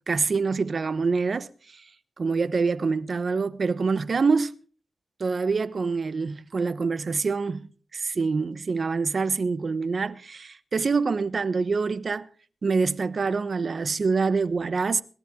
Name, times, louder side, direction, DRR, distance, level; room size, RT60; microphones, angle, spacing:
voice 1, 0.1-1.9 2.2-4.5 5.2-12.3 12.6-15.0, right 4 dB, 55° right, 1.1 m, -26 dB
21.5 x 13.5 x 3.8 m
cardioid pair, 50°, 0 cm